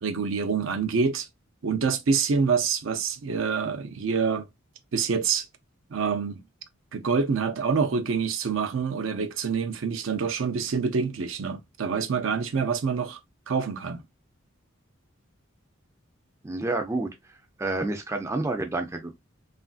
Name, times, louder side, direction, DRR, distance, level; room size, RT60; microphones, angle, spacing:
voice 1, 0.0-1.3 1.6-4.5 4.9-5.5 5.9-6.4 6.9-13.2 13.5-14.0, right 5 dB, 75° right, 0.5 m, -26 dB
voice 2, 16.4-17.1 17.6-19.2, right 2 dB, 15° right, 0.4 m, -29 dB
3.0 x 2.4 x 2.4 m
head